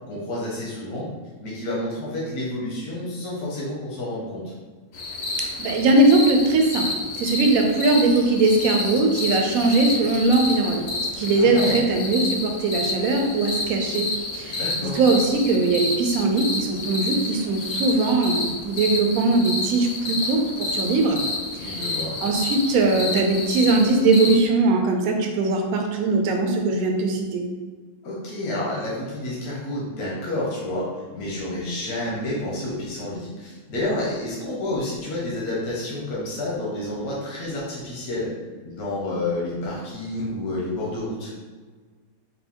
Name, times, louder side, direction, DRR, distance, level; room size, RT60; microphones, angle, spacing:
voice 1, 0.1-1.1 1.4-4.5 11.4-11.8 14.5-15.0 21.6-22.2 28.0-38.3 38.6-41.3, left 1 dB, 80° left, -5 dB, 1.4 m, -29 dB
sound 1, 4.9-24.4, left 2 dB, 60° left, 0.8 m, -29 dB
voice 2, 5.3-6.9 7.2-14.1 14.3-21.2 21.6-21.9 22.2-27.4, right 3 dB, 75° right, 3 dB, 1.0 m, -20 dB
4.1 x 2.6 x 3.5 m, 1.4 s
omnidirectional pair, 1.6 m